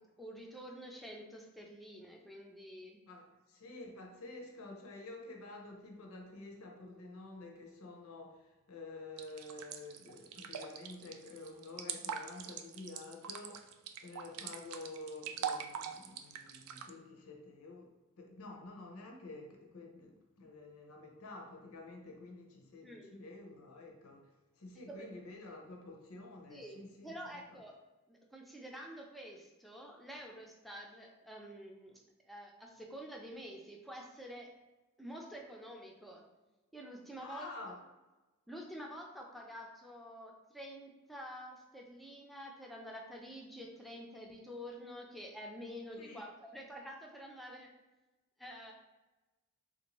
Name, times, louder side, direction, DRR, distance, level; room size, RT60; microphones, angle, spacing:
voice 1, 0.2-3.0 22.8-23.3 26.5-27.7 28.1-31.9 32.2-34.5 35.0-36.2 36.7-37.5 38.5-47.7 48.4-48.7, equal, ahead, -1 dB, 0.4 m, -48 dB
voice 2, 3.1-13.7 14.0-27.6 37.2-37.8 46.0-46.2, left 2 dB, 80° left, 1 dB, 0.7 m, -50 dB
sound 1, 9.2-16.9, right 8 dB, 80° right, 0.3 m, -43 dB
3.5 x 2.6 x 3.0 m, 1.1 s
head